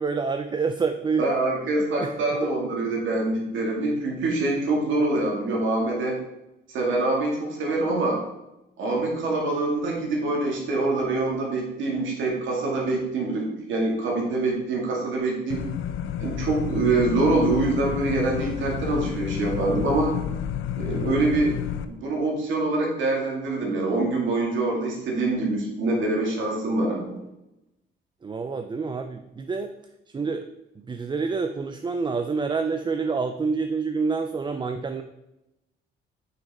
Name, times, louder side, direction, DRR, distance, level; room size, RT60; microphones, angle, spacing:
voice 1, 0.0-1.2 1.8-2.2 28.2-29.7 30.1-30.5 30.7-35.0, right 4 dB, 25° right, 7 dB, 0.4 m, -27 dB
voice 2, 1.2-6.2 6.7-8.2 8.8-15.7 16.2-20.1 20.8-21.6 21.9-27.1, right 2 dB, 75° right, -1 dB, 2.1 m, -25 dB
sound 1, 15.5-21.9, left 10 dB, 85° left, 0.5 m, -30 dB
6.2 x 5.8 x 4.2 m, 0.93 s
cardioid pair, 90°, 20 cm